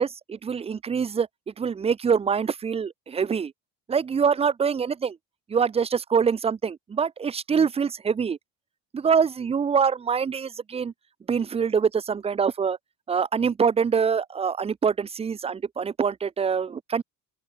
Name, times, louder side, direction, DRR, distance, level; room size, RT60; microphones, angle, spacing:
voice 1, 0.0-3.5 3.9-5.2 5.5-8.4 8.9-10.9 11.3-12.8 13.1-17.0, right 6 dB, 15° right, 0.3 m, -25 dB
open air
cardioid pair, 140°, 46 cm